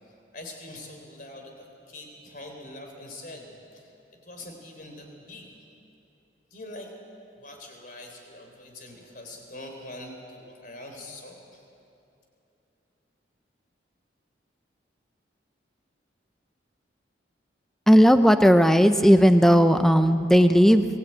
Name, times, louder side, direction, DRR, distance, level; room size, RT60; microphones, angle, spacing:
voice 1, 0.0-3.9 4.2-5.6 6.5-6.9 7.4-11.6, left 1 dB, 45° left, 3 dB, 3.9 m, -43 dB
voice 2, 17.9-20.8, equal, ahead, 8 dB, 0.7 m, -16 dB
23.0 x 17.5 x 9.0 m, 2.8 s
head